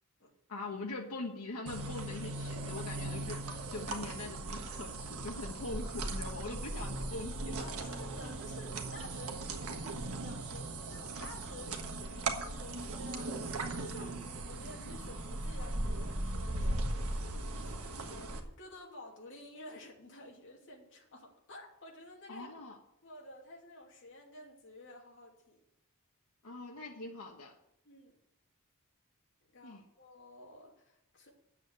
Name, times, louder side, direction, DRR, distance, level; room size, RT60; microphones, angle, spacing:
voice 1, 0.5-7.6 22.3-22.8 26.4-27.5 29.6-29.8, left 2 dB, 80° left, 1 dB, 1.3 m, -42 dB
sound 1, 1.7-18.4, right 2 dB, 70° right, 1.5 m, -38 dB
voice 2, 7.6-22.5 23.0-25.6 27.8-28.1 29.5-31.3, left 1 dB, 60° left, -1 dB, 2.8 m, -52 dB
9.4 x 7.3 x 8.1 m, 0.78 s
head